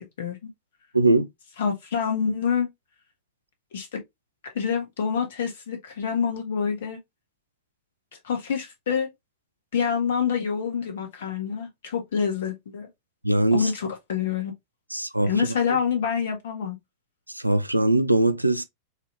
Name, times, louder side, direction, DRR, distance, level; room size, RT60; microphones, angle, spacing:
voice 1, 0.2-0.5 1.6-2.7 3.7-4.0 4.4-7.0 8.2-9.1 9.7-12.9 13.5-14.5 15.3-16.7, left 7 dB, 60° left, 1.3 m, -27 dB
voice 2, 0.9-1.3 13.2-13.7 14.9-15.5 17.3-18.6, right 2 dB, 85° right, 0.3 m, -21 dB
4.0 x 2.9 x 2.7 m
figure-of-eight pair, 90°, 0 cm